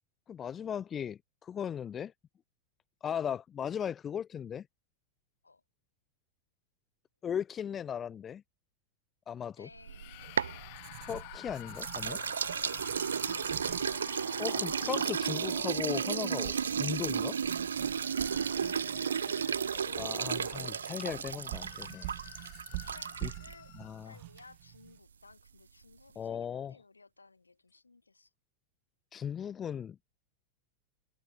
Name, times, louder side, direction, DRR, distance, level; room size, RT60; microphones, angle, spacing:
voice 1, 0.3-2.1 3.0-4.7 7.2-8.4 9.3-9.7 11.0-12.2 14.4-17.4 20.0-22.1 23.2-23.3 23.8-24.1 26.2-26.8 29.1-30.0, left 8 dB, 25° left, 0.4 m, -37 dB
voice 2, 9.6-10.6 12.6-15.8 18.1-19.6 22.9-23.7 24.0-28.3, left 3 dB, 80° left, 4.8 m, -58 dB
sound 1, 9.8-16.9 17.6-24.1, left 26 dB, 50° left, 1.7 m, -50 dB
sound 2, 9.8-11.4 11.8-23.5, right 7 dB, 70° right, 0.4 m, -33 dB
Writing, 10.2-25.0, right 25 dB, 50° right, 1.0 m, -47 dB
figure-of-eight pair, 90°, 0 cm